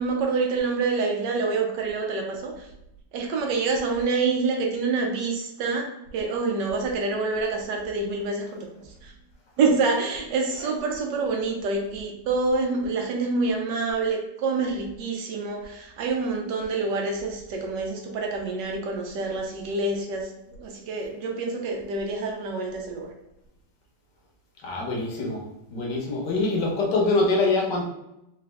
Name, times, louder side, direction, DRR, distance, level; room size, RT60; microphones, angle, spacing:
voice 1, 0.0-2.7 3.1-8.7 9.0-9.1 9.6-23.1, right 3 dB, 75° right, 2 dB, 1.4 m, -27 dB
voice 2, 24.6-25.5 25.7-27.9, left 3 dB, 75° left, -1 dB, 1.6 m, -24 dB
4.1 x 2.3 x 3.4 m, 0.86 s
omnidirectional pair, 1.9 m